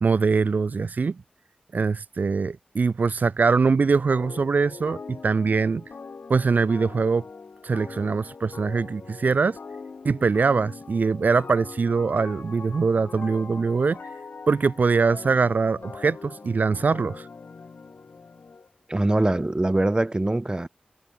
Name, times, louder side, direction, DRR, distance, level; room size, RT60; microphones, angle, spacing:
voice 1, 0.0-1.2 1.7-5.8 6.3-7.2 7.6-9.6 10.0-14.0 14.5-17.3, right 4 dB, 70° right, 0.6 m, -23 dB
sound 1, 4.1-18.7, left 4 dB, 80° left, 4.4 m, -42 dB
voice 2, 18.9-20.7, right 2 dB, 30° right, 1.3 m, -23 dB
wide cardioid pair, 60°, 3 cm